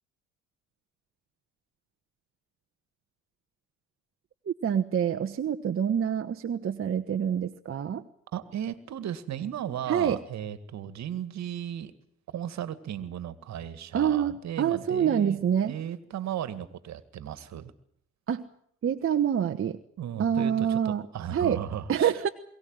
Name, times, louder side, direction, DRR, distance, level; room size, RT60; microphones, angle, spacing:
voice 1, 4.4-8.0 9.9-10.2 13.9-15.8 18.3-18.4 18.8-19.8 20.2-21.0 21.3-21.6 21.9-22.3, right 8 dB, 45° right, 5 dB, 1.3 m, -26 dB
voice 2, 8.3-11.9 12.3-17.7 20.0-22.1, right 10 dB, 60° right, 14 dB, 2.1 m, -36 dB
22.5 x 17.5 x 9.0 m, 0.67 s
hypercardioid pair, 60°, 31 cm